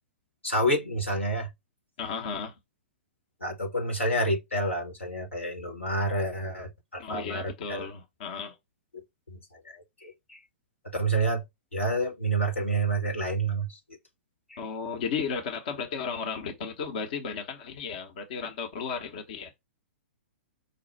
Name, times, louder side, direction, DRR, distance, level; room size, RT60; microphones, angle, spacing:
voice 1, 0.4-1.5 3.4-7.9 9.3-9.4 9.6-10.4 10.9-11.4 11.7-13.8 14.5-14.6, right 2 dB, 85° left, 1.6 m, -29 dB
voice 2, 2.0-2.5 7.0-8.6 14.6-19.5, left 5 dB, 45° left, 0.9 m, -34 dB
5.1 x 2.3 x 4.1 m
figure-of-eight pair, 110°, 7 cm